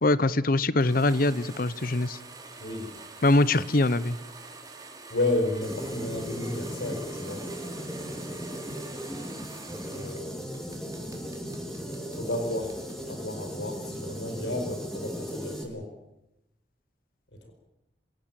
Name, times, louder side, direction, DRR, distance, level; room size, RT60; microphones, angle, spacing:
voice 1, 0.0-2.2 3.2-4.2, left 2 dB, 55° left, 17 dB, 0.9 m, -23 dB
sound 1, 0.8-10.2 10.5-13.0, right 3 dB, 20° right, 3.9 m, -46 dB
voice 2, 2.6-2.9 5.1-7.4 9.7-10.5 12.2-12.8 13.1-15.9, left 2 dB, 85° left, 5 dB, 4.9 m, -32 dB
sound 2, 5.6-15.6, equal, ahead, 4.5 m, -37 dB
26.5 x 16.5 x 9.0 m, 0.89 s
head